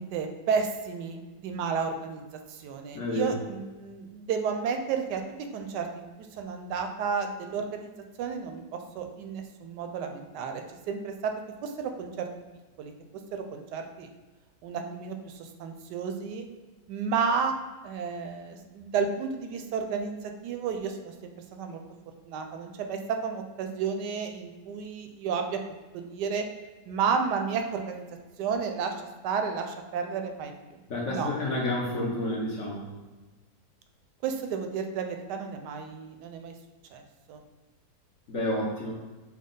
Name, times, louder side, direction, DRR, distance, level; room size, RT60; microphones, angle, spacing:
voice 1, 0.0-2.2 2.5-5.2 5.5-6.1 6.4-7.9 8.2-11.3 11.6-12.3 12.8-12.9 13.3-14.1 14.6-16.5 16.9-17.5 17.8-20.1 20.4-21.8 22.2-25.6 25.9-26.5 26.9-28.1 28.4-28.9 29.2-30.8 31.1-31.3 34.2-36.5 36.9-37.0 37.3-37.4, right 6 dB, 85° right, 5 dB, 1.2 m, -32 dB
voice 2, 2.9-3.4 30.9-32.9 38.3-38.9, left 1 dB, 55° left, -3 dB, 1.0 m, -30 dB
6.1 x 2.3 x 3.8 m, 1.2 s
omnidirectional pair, 1.8 m